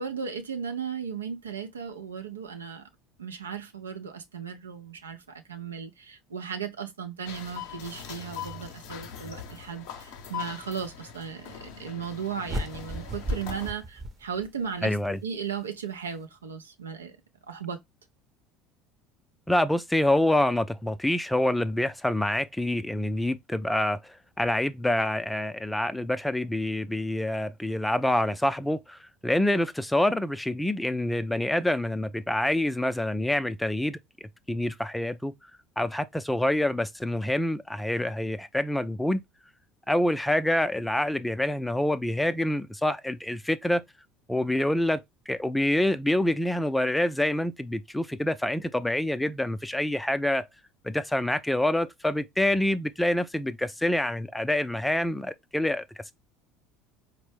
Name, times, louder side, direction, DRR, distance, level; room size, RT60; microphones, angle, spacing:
voice 1, 0.0-2.8 3.2-15.0 15.2-17.2 17.5-17.8, right 7 dB, 90° right, 0.4 m, -36 dB
sound 1, 7.3-13.7, left 8 dB, 65° left, 0.6 m, -41 dB
sound 2, 12.5-14.8, equal, 25° right, 0.7 m, -34 dB
voice 2, 14.8-15.2 19.5-35.3 35.8-39.2 39.9-43.8 44.3-50.5 50.8-55.8, left 1 dB, 5° left, 0.4 m, -26 dB
4.3 x 2.0 x 3.2 m
hypercardioid pair, 70°, 0 cm